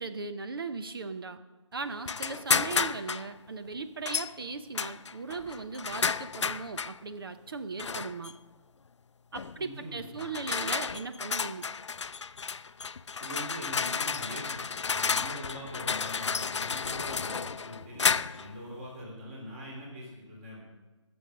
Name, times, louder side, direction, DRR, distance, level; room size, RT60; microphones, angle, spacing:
voice 1, 0.0-1.4 1.7-8.3 9.3-11.7, right 4 dB, 45° right, 9 dB, 0.7 m, -38 dB
sound 1, 2.0-3.3 4.0-4.3 4.7-7.0 7.8-8.3 9.3-9.6 10.2-18.5, left 5 dB, 65° left, 0.5 m, -32 dB
voice 2, 9.6-10.2 13.2-20.7, equal, 25° right, -3 dB, 3.4 m, -43 dB
19.5 x 7.1 x 6.4 m, 1.2 s
figure-of-eight pair, 160°, 16 cm